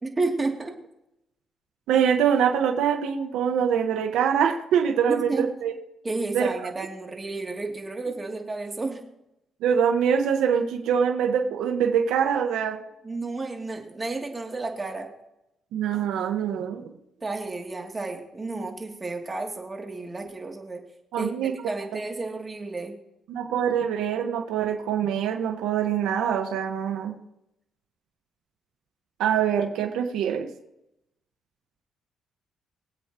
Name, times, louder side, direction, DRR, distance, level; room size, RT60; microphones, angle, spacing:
voice 1, 0.0-0.7 5.1-5.4 6.0-9.0 13.0-15.1 17.2-20.8 21.2-23.0, right 3 dB, 25° right, 1 dB, 2.8 m, -31 dB
voice 2, 1.9-5.7 6.3-6.5 9.6-12.8 15.7-16.8 21.1-21.5 23.3-27.1 29.2-30.5, right 8 dB, 90° right, 3 dB, 1.4 m, -24 dB
24.0 x 8.2 x 3.0 m, 0.84 s
cardioid pair, 90°, 0 cm